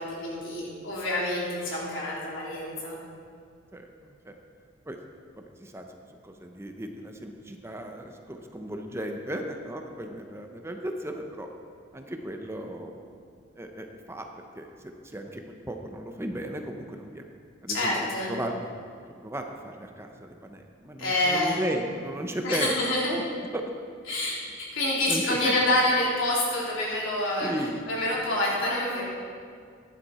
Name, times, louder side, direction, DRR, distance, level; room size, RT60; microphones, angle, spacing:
voice 1, 0.0-3.0 17.7-18.3 21.0-21.6 22.4-23.1 24.1-27.5 27.9-29.1, left 1 dB, 80° left, -5 dB, 3.5 m, -27 dB
voice 2, 5.6-6.0 6.2-11.5 11.9-13.1 13.6-14.3 14.5-14.7 15.1-17.3 17.6-17.9 18.3-18.7 19.2-22.8 23.1-23.2 23.5-23.6 25.1-25.5 27.4-27.8 28.3-28.4, right 1 dB, 15° right, 4 dB, 0.7 m, -35 dB
15.0 x 11.0 x 4.2 m, 2.2 s
head